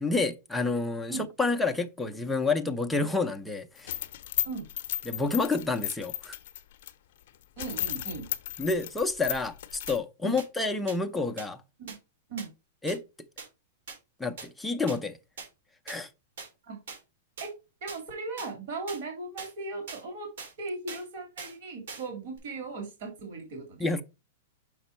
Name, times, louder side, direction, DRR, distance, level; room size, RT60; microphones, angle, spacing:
voice 1, 0.0-3.9 5.1-6.4 8.6-11.6 12.8-13.0 14.2-15.2 15.9-16.1 23.8-24.0, left 3 dB, 5° left, 0.4 m, -29 dB
sound 1, 3.8-6.9 7.3-7.4 7.6-10.0, left 13 dB, 50° left, 0.6 m, -34 dB
voice 2, 7.6-8.3 10.2-10.4 11.8-11.9 12.3-12.5 16.6-16.8 17.4-17.5 17.8-20.3 20.6-23.9, right 3 dB, 45° right, 2.0 m, -37 dB
sound 2, 9.9-10.0 10.4-10.5 10.9-11.0 11.4-11.5 11.9-12.0 12.4-12.5 12.9-13.0 13.4-13.5 13.9-14.0 14.4-14.5 14.9-15.0 15.4-15.5 15.9-16.0 16.4-16.5 16.9-17.0 17.4-17.5 17.9-18.0 18.4-18.5 18.9-19.0 19.4-19.5 19.9-20.0 20.4-20.5 20.9-21.0 21.4-21.5 21.9-22.1 22.4-22.5, right 4 dB, 70° right, 3.6 m, -41 dB
6.0 x 5.3 x 4.2 m
supercardioid pair, 170°, 0 cm